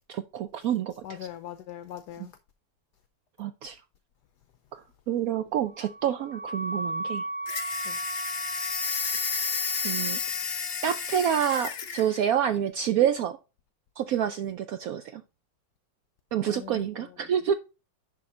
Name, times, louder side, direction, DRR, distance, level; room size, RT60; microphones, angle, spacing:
voice 1, 0.1-0.9 3.4-3.8 4.7-4.8 5.1-7.2 9.8-10.2 10.8-13.4 14.0-15.2 16.3-17.5, right 9 dB, 80° right, 0.8 m, -27 dB
voice 2, 1.0-2.3 7.8-8.0 16.4-17.3, left 10 dB, 70° left, 1.1 m, -42 dB
Wind instrument woodwind instrument, 5.7-10.5, right 2 dB, 5° right, 1.7 m, -36 dB
sound 1, 7.5-12.1, left 6 dB, 50° left, 0.7 m, -31 dB
10.5 x 3.6 x 4.2 m
omnidirectional pair, 2.0 m